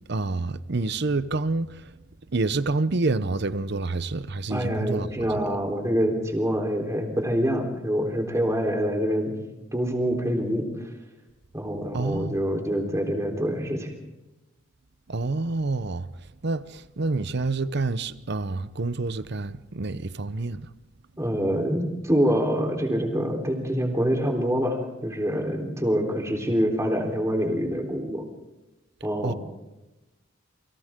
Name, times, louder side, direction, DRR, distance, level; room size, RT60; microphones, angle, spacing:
voice 1, 0.1-1.8 2.3-5.3 11.9-12.4 15.1-16.1 16.4-20.7 29.2-29.3, right 3 dB, 60° right, 0.8 m, -28 dB
voice 2, 4.5-9.3 9.7-10.7 11.5-13.9 21.2-28.2 29.0-29.4, equal, 15° right, 3.8 m, -25 dB
29.0 x 24.5 x 3.8 m
head